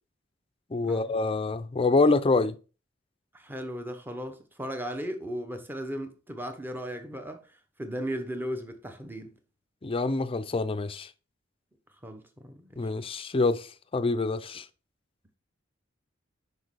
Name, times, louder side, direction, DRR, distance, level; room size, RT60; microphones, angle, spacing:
voice 1, 0.7-2.6 9.8-11.1 12.8-14.7, left 3 dB, 30° left, 0.5 m, -26 dB
voice 2, 3.3-9.3 12.0-12.9, equal, 10° right, 0.9 m, -36 dB
6.4 x 5.4 x 4.6 m
head